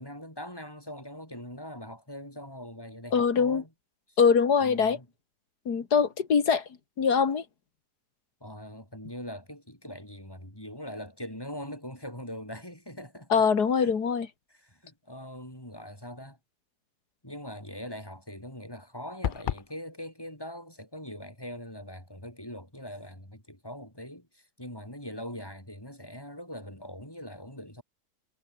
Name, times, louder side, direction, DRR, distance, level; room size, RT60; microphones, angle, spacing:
voice 1, 0.0-3.7 4.1-4.2 4.6-5.1 8.4-13.5 13.8-14.0 14.5-16.4 17.2-27.8, equal, 15° left, 8.1 m, -42 dB
voice 2, 3.1-3.6 4.2-5.0 5.7-6.7 7.0-7.4 13.3-14.3, left 6 dB, 90° left, 2.5 m, -23 dB
sound 1, 19.2-19.7, left 9 dB, 65° left, 0.5 m, -30 dB
omnidirectional pair, 1.7 m